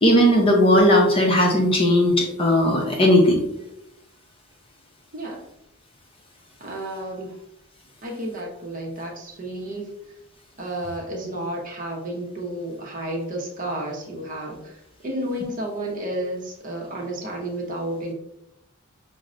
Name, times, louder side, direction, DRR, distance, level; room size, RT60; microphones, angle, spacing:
voice 1, 0.0-3.4, left 1 dB, 25° left, 0 dB, 0.6 m, -17 dB
voice 2, 5.1-5.4 6.6-7.4 8.0-9.9 10.6-18.1, right 1 dB, 40° right, 0 dB, 0.7 m, -31 dB
6.0 x 2.1 x 2.5 m, 0.79 s
head